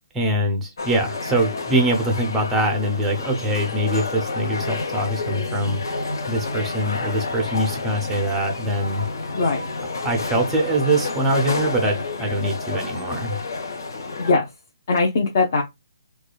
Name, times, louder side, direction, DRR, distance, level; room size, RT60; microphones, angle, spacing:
voice 1, 0.1-5.8 6.3-9.0 10.0-13.4, right 1 dB, 5° right, 0.6 m, -23 dB
sound 1, 0.8-14.3, left 3 dB, 65° left, 1.1 m, -29 dB
voice 2, 9.3-9.6 14.2-14.5 14.9-15.6, left 3 dB, 35° left, 0.7 m, -20 dB
4.7 x 2.3 x 2.2 m
hypercardioid pair, 175°, 2 cm